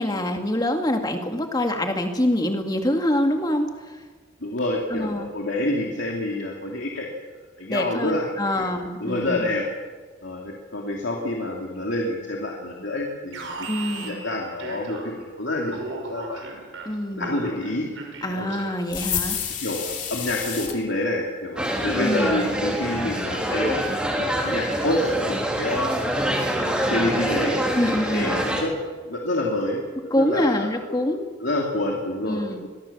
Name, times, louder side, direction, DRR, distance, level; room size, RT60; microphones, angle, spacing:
voice 1, 0.0-4.0 4.9-5.3 7.7-9.5 13.7-14.2 16.9-17.4 18.2-19.5 22.0-22.4 27.7-28.4 30.1-31.2 32.3-32.6, left 1 dB, 20° left, 4 dB, 2.1 m, -25 dB
voice 2, 4.4-7.1 7.6-8.7 9.0-9.6 10.2-16.6 17.2-17.9 18.2-18.5 19.6-23.8 24.2-26.1 26.7-27.6 28.1-28.7 29.0-31.0 31.4-32.7, left 1 dB, 70° left, -1 dB, 2.8 m, -28 dB
Alarm, 13.3-15.3 15.7-19.0, right 3 dB, 85° right, 5.6 m, -37 dB
sound 1, 18.9-20.8, left 9 dB, 40° left, 2.9 m, -29 dB
sound 2, 21.6-28.6, equal, 5° right, 3.4 m, -25 dB
23.5 x 18.0 x 7.3 m, 1.5 s
head